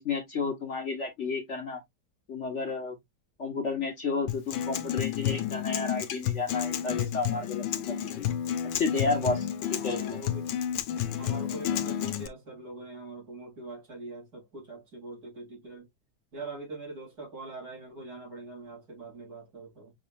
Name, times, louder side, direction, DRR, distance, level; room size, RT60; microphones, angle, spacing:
voice 1, 0.0-1.8 2.3-3.0 3.4-8.3 8.7-10.2, left 4 dB, 45° left, 1.5 m, -32 dB
Acoustic guitar, 4.3-12.3, left 10 dB, 85° left, 1.4 m, -31 dB
voice 2, 9.6-10.4 11.2-15.9 16.3-19.9, right 2 dB, 55° right, 3.6 m, -43 dB
6.1 x 3.5 x 2.5 m
omnidirectional pair, 1.9 m